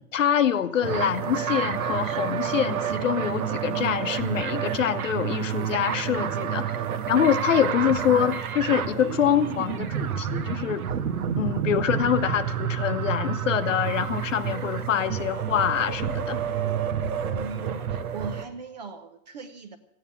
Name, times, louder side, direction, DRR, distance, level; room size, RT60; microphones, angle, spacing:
voice 1, 0.1-6.7 7.1-10.9 11.4-16.4, left 9 dB, 50° left, 11 dB, 1.1 m, -25 dB
sound 1, 0.8-18.4, right 8 dB, 60° right, 1.5 m, -29 dB
voice 2, 17.3-19.8, right 4 dB, 25° right, 9 dB, 0.8 m, -39 dB
15.5 x 9.5 x 9.7 m, 0.80 s
hypercardioid pair, 175°, 49 cm